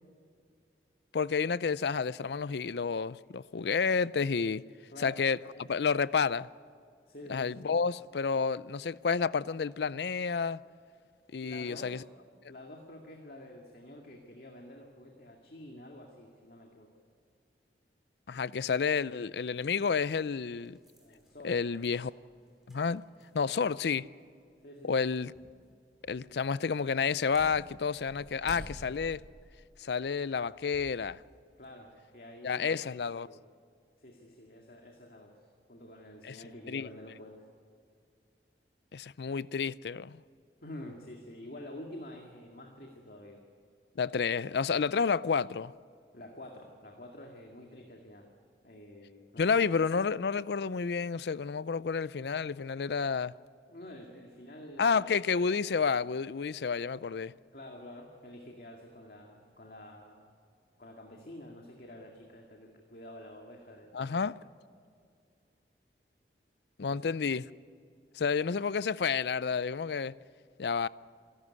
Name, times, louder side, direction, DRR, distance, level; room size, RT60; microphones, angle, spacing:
voice 1, 1.1-4.6 5.0-5.4 5.7-6.5 7.3-10.6 11.3-12.0 18.3-20.8 21.4-22.1 22.7-23.0 23.3-24.0 24.8-25.3 26.1-29.2 29.8-31.2 32.4-33.3 36.2-36.4 36.7-36.9 38.9-40.2 44.0-45.7 49.4-53.3 54.8-57.3 63.9-64.3 66.8-67.5 68.2-70.1 70.6-70.9, left 5 dB, 70° left, 0.5 m, -30 dB
voice 2, 4.9-5.7 7.1-7.6 11.4-12.1 12.5-16.9 21.0-21.6 23.5-23.8 24.6-25.1 31.6-33.5 34.0-37.4 40.6-43.4 46.1-48.3 48.6-49.6 53.7-55.0 57.5-60.3 60.8-64.3 66.8-67.1, left 1 dB, 55° left, 2.1 m, -49 dB
sound 1, 19.4-19.5 20.2-23.7 24.0-24.1 25.3-25.6 26.0-26.3 27.0-31.0 31.5-31.7, equal, ahead, 5.1 m, -51 dB
26.5 x 12.5 x 9.7 m
head